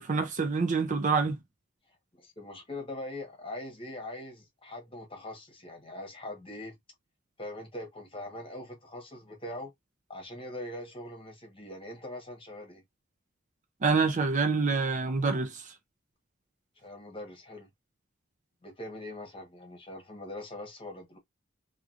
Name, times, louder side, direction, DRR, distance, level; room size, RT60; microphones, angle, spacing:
voice 1, 0.0-1.4 13.8-15.7, right 4 dB, 40° right, 0.5 m, -27 dB
voice 2, 2.2-6.8 7.4-9.7 10.1-12.8 16.8-17.7 18.6-21.2, left 1 dB, 25° left, 1.2 m, -42 dB
3.0 x 2.4 x 2.4 m
head